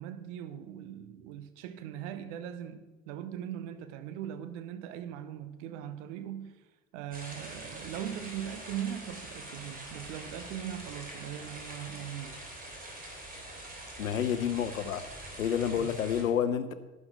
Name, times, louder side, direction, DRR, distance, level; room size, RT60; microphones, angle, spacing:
voice 1, 0.0-6.6 6.9-12.4 15.8-15.9, right 10 dB, 60° right, 1.1 m, -40 dB
sound 1, 7.1-16.2, right 1 dB, 20° right, 3.2 m, -44 dB
voice 2, 14.0-15.0 15.4-16.7, left 8 dB, 80° left, 0.8 m, -29 dB
11.5 x 10.5 x 3.9 m
figure-of-eight pair, 65°, 40 cm